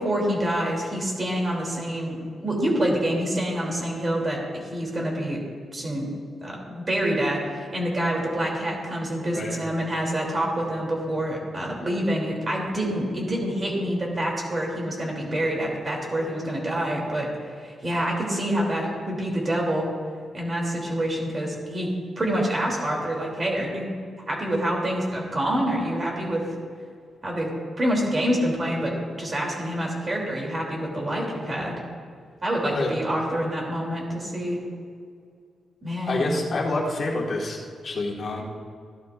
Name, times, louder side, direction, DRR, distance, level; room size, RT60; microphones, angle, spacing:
voice 1, 0.0-4.4 4.7-5.4 5.7-6.1 6.4-17.3 17.6-19.9 20.3-21.9 22.2-23.9 24.3-26.5 27.2-27.5 27.8-31.7 32.4-34.6 35.8-36.3, right 1 dB, 30° right, -1 dB, 3.0 m, -27 dB
voice 2, 36.1-37.6 37.8-38.4, left 2 dB, 50° left, -1 dB, 1.8 m, -27 dB
15.0 x 12.0 x 2.6 m, 2.2 s
cardioid pair, 110°, 0 cm